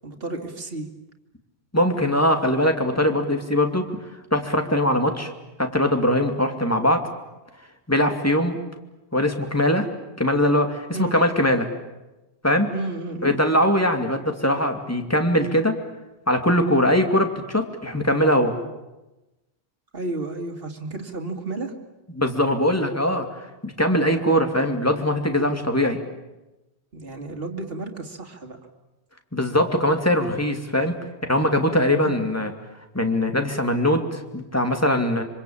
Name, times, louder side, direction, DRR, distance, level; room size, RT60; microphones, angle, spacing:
voice 1, 0.0-0.9 10.9-11.2 12.7-13.4 19.9-21.7 26.9-28.6 32.0-32.2, right 2 dB, 55° right, 2 dB, 2.6 m, -32 dB
voice 2, 1.7-3.9 4.3-5.3 5.6-7.0 7.9-8.6 9.1-9.9 10.2-11.7 12.4-12.7 13.2-15.7 16.3-18.5 22.2-23.3 23.6-26.0 29.3-31.0 31.3-32.5 32.9-35.2, left 1 dB, 15° left, 5 dB, 2.6 m, -21 dB
26.0 x 25.5 x 8.8 m, 1.0 s
omnidirectional pair, 1.1 m